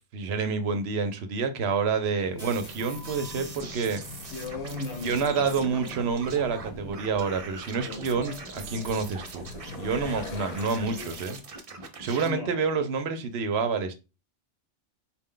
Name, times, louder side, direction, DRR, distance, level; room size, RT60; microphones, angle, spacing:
voice 1, 0.1-4.0 5.0-9.4 9.8-11.4 12.0-13.9, right 5 dB, 65° right, 0.8 m, -28 dB
sound 1, 2.1-11.4, left 5 dB, 60° left, 0.4 m, -44 dB
sound 2, 2.4-12.3, right 3 dB, 40° right, 0.5 m, -42 dB
voice 2, 4.3-5.9 7.8-8.0 12.2-12.6, left 3 dB, 85° left, 1.5 m, -37 dB
4.3 x 2.2 x 3.6 m
omnidirectional pair, 1.2 m